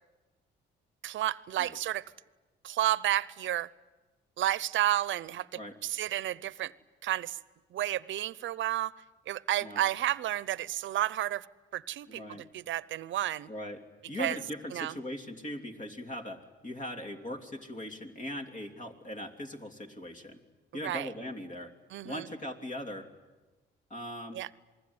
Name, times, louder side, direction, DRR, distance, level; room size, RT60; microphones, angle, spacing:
voice 1, 1.0-2.0 2.6-3.7 4.4-6.7 7.0-7.4 7.7-8.9 9.3-11.4 11.7-12.2 12.5-13.5 14.2-14.4 14.7-14.9 20.8-21.1 21.9-22.2 24.3-24.5, right 13 dB, 75° right, 20 dB, 0.8 m, -31 dB
voice 2, 12.1-12.5 13.5-13.8 14.1-20.4 20.7-21.7 22.0-23.1 23.9-24.4, left 1 dB, 40° left, 5 dB, 3.2 m, -40 dB
27.5 x 20.5 x 9.8 m, 1.2 s
cardioid pair, 90°, 20 cm